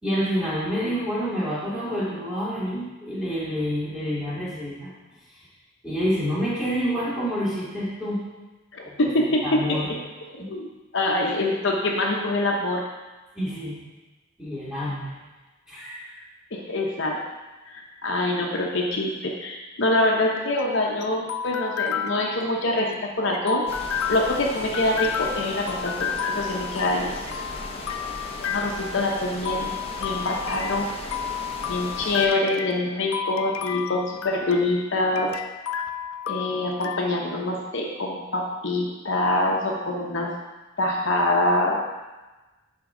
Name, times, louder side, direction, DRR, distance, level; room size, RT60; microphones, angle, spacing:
voice 1, 0.0-4.9 5.8-8.2 8.8-9.0 9.4-9.9 10.4-10.5 13.3-13.8 14.4-15.1 15.7-16.2, equal, 5° right, -10 dB, 2.6 m, -28 dB
voice 2, 8.7-10.0 10.3-10.7 10.9-12.8 16.5-17.2 17.7-23.6 24.1-27.1 28.5-30.9 31.7-35.3 36.3-40.3 40.8-41.8, left 2 dB, 60° left, -1 dB, 0.8 m, -25 dB
sound 1, 20.3-37.0, left 7 dB, 85° left, 0.4 m, -32 dB
sound 2, 23.7-32.3, left 2 dB, 30° left, 0.7 m, -37 dB
11.0 x 4.4 x 3.8 m, 1.2 s
head